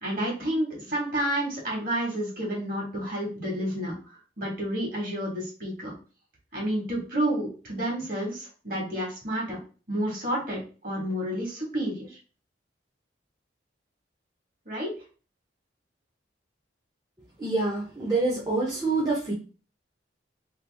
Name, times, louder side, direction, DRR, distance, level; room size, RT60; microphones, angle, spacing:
voice 1, 0.0-3.9 4.4-6.0 6.5-9.6 9.9-12.2 14.6-14.9, right 1 dB, 50° right, -2 dB, 1.4 m, -30 dB
voice 2, 17.4-19.3, right 3 dB, 20° right, -5 dB, 0.7 m, -26 dB
2.9 x 2.4 x 3.3 m, 0.36 s
head